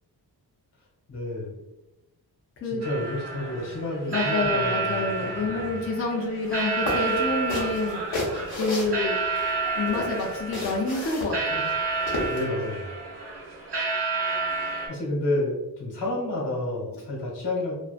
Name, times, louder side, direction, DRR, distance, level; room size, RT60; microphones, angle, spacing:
voice 1, 1.1-1.6 2.7-5.4 12.3-13.0 14.9-17.7, left 1 dB, 80° left, -3 dB, 1.1 m, -30 dB
sound 1, 2.8-14.9, right 4 dB, 80° right, 0.9 m, -30 dB
voice 2, 4.1-8.0 8.6-9.2 9.8-11.7, left 3 dB, 35° left, -1 dB, 0.5 m, -28 dB
sound 2, 6.5-6.6 6.9-9.5 9.9-12.4, left 1 dB, 65° left, 0.8 m, -31 dB
2.5 x 2.2 x 2.4 m, 0.99 s
wide cardioid pair, 145°, 40 cm